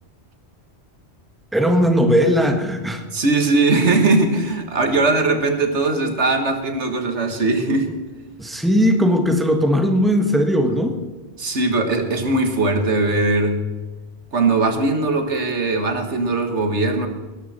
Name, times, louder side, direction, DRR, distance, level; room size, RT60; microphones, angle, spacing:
voice 1, 1.5-3.0 8.4-11.0, equal, ahead, 4 dB, 1.4 m, -18 dB
voice 2, 3.1-7.9 11.4-13.6 14.3-17.1, right 3 dB, 85° right, 6 dB, 1.9 m, -20 dB
19.5 x 12.5 x 4.3 m, 1.2 s
omnidirectional pair, 1.2 m